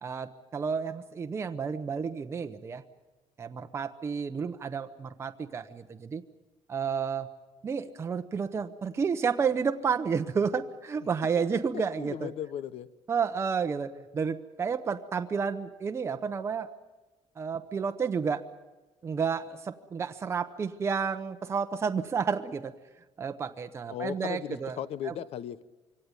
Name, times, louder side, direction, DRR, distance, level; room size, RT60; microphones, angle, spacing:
voice 1, 0.0-2.8 3.4-6.2 6.7-7.3 7.6-12.3 13.1-16.7 17.4-18.4 19.0-22.7 23.2-24.8 25.0-25.1, right 6 dB, 25° right, 7 dB, 0.8 m, -31 dB
voice 2, 12.0-12.9 23.9-25.6, left 10 dB, 60° left, 17 dB, 0.8 m, -36 dB
24.0 x 17.0 x 9.7 m, 1.2 s
cardioid pair, 180°, 11 cm